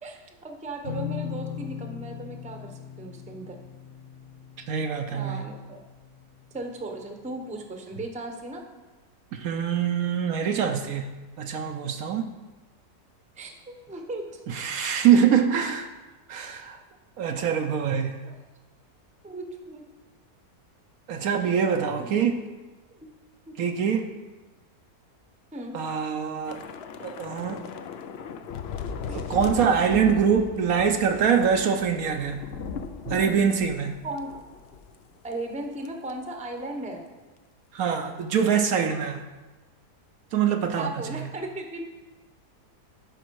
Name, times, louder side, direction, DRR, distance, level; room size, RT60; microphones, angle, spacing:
voice 1, 0.0-3.6 5.1-5.8 6.5-8.6 10.5-10.6 13.4-14.4 18.3-18.4 19.2-19.8 22.0-22.2 22.9-23.0 23.5-23.6 25.5-25.8 29.1-29.2 34.0-34.3 35.2-37.0 40.8-41.9, right 2 dB, 5° right, 3 dB, 0.7 m, -36 dB
sound 1, 0.8-6.4, left 8 dB, 45° left, 1.1 m, -39 dB
voice 2, 4.7-5.4 9.3-11.1 11.4-12.3 14.5-15.9 16.3-16.8 17.2-18.2 21.1-22.4 23.6-24.1 25.7-26.6 27.0-27.6 29.1-32.5 33.1-34.0 37.7-39.2 40.3-41.0, right 7 dB, 70° right, 5 dB, 1.0 m, -24 dB
Thunder / Rain, 26.4-35.0 35.3-35.5 35.8-36.1, left 6 dB, 75° left, 0.5 m, -38 dB
11.5 x 5.4 x 4.6 m, 1.2 s
omnidirectional pair, 1.7 m